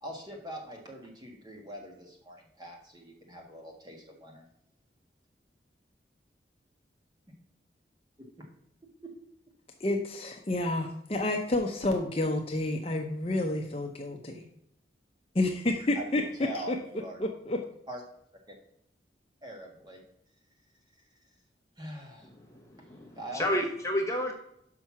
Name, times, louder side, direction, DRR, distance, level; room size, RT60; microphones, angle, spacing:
voice 1, 0.0-4.4 8.4-8.5 15.9-16.0 16.4-17.2 17.9-18.0 19.4-20.0 21.8-22.3 23.1-23.4, equal, 25° right, 0 dB, 1.6 m, -42 dB
voice 2, 9.8-14.4 15.3-16.2 16.5-16.8 17.2-17.6, left 2 dB, 35° left, 3 dB, 0.7 m, -29 dB
voice 3, 22.2-24.3, left 1 dB, 15° left, 1 dB, 1.0 m, -31 dB
6.0 x 5.6 x 5.9 m, 0.74 s
head